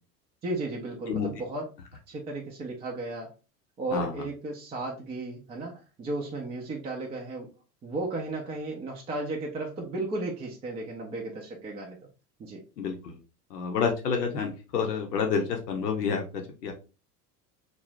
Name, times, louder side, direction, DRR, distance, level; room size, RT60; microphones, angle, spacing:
voice 1, 0.4-1.7 2.1-3.3 3.8-7.5 7.8-12.0 12.4-12.6, right 2 dB, 15° right, -1 dB, 0.3 m, -34 dB
voice 2, 3.9-4.2 12.8-13.2 13.5-16.7, left 6 dB, 85° left, 2 dB, 0.6 m, -29 dB
2.5 x 2.0 x 3.0 m, 0.32 s
hypercardioid pair, 80°, 47 cm